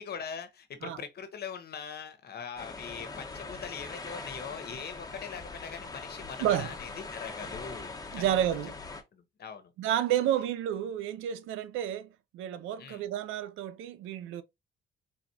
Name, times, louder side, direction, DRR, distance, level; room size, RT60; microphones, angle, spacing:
voice 1, 0.0-8.4 9.1-9.7 12.8-13.1, left 6 dB, 55° left, 1.0 m, -42 dB
sound 1, 2.6-9.0, left 3 dB, 20° left, 1.2 m, -42 dB
voice 2, 8.1-8.7 9.8-14.4, right 11 dB, 90° right, 0.5 m, -30 dB
4.1 x 3.6 x 2.8 m
cardioid pair, 90°, 20 cm